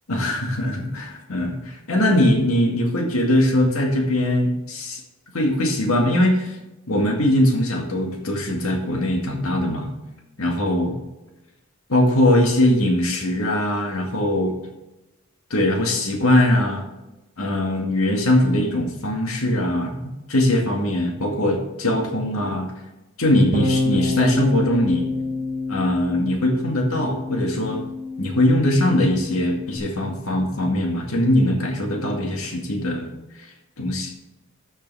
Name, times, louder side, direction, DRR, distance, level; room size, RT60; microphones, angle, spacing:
voice 1, 0.1-5.0 5.3-6.6 6.9-9.9 10.4-10.9 11.9-14.6 15.5-16.8 17.4-22.7 23.2-25.1 25.7-27.8 28.2-33.1 33.8-34.1, left 1 dB, 80° left, 2 dB, 2.0 m, -21 dB
Bass guitar, 23.5-29.8, left 2 dB, 45° right, 1.6 m, -27 dB
13.5 x 6.8 x 3.5 m, 1.0 s
head